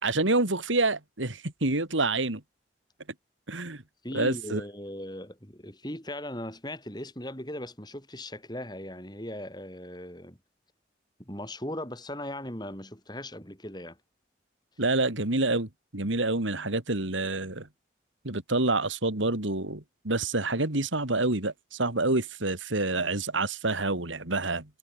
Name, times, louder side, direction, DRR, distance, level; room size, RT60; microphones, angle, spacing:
voice 1, 0.0-2.4 3.5-3.8 4.1-4.6 14.8-17.7 18.2-24.6, right 2 dB, 85° right, 3.0 m, -27 dB
voice 2, 4.0-10.4 11.2-14.0, left 1 dB, 20° left, 6.8 m, -38 dB
head